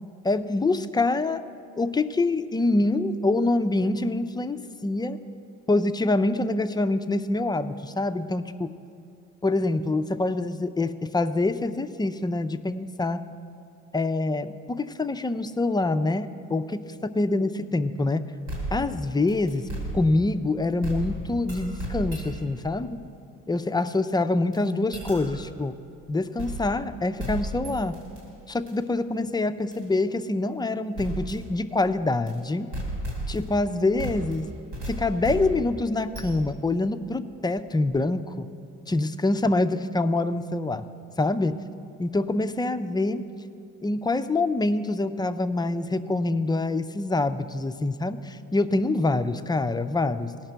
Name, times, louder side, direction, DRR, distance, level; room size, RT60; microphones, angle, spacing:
voice 1, 0.2-1.4 1.8-5.2 5.7-8.7 9.4-13.2 13.9-18.2 18.7-19.7 19.9-23.0 23.5-25.8 26.1-28.0 28.5-32.7 33.3-34.5 34.9-38.5 38.9-40.8 41.2-41.6 42.0-43.3 43.8-50.3, left 2 dB, 15° left, 10 dB, 0.4 m, -25 dB
sound 1, 18.5-20.4 20.8-22.6 24.5-24.6 24.9-25.5 26.4-26.9 27.2-28.2 28.7-28.8 29.7-29.8 31.0-31.5 32.3-32.4 32.7-33.7 34.0-36.7, right 1 dB, 90° right, 2.5 m, -34 dB
17.0 x 5.9 x 4.5 m, 2.5 s
supercardioid pair, 70°, 30 cm